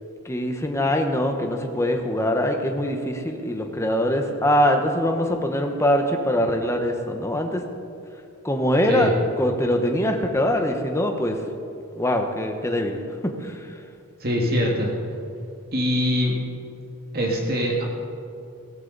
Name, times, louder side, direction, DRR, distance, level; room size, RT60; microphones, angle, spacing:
voice 1, 0.2-7.6 8.4-9.1 9.4-11.4 12.0-13.0 13.2-13.6, equal, 10° left, 4 dB, 1.0 m, -23 dB
voice 2, 14.2-14.9 15.7-16.3 17.1-18.0, equal, 45° right, -1 dB, 2.0 m, -23 dB
16.5 x 14.0 x 4.0 m, 2.4 s
head